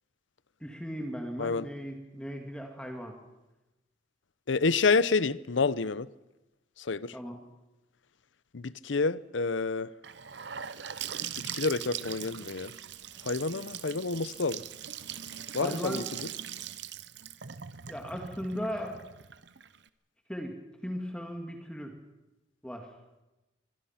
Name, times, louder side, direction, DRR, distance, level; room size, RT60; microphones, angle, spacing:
voice 1, 0.6-3.1 7.1-7.4 15.6-16.0 17.9-19.0 20.3-20.6 20.8-21.9 22.6-22.9, equal, 5° left, 2.1 m, -37 dB
voice 2, 4.5-6.1 6.8-7.1 8.5-9.9 11.4-12.7 13.2-14.6 15.5-16.0, left 4 dB, 75° left, 0.7 m, -28 dB
Gurgling / Sink (filling or washing) / Bathtub (filling or washing), 10.0-19.9, right 9 dB, 65° right, 0.9 m, -41 dB
24.5 x 21.5 x 5.8 m
head